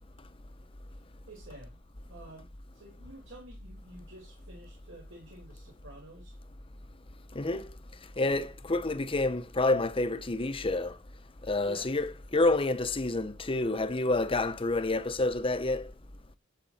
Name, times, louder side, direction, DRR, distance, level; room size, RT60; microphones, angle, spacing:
voice 1, 0.9-1.8 2.1-6.4 11.6-12.0, right 1 dB, 75° right, 4.7 m, -50 dB
voice 2, 7.4-7.7 8.2-10.9 11.5-15.9, left 2 dB, 30° left, 0.8 m, -28 dB
12.0 x 8.4 x 4.3 m
head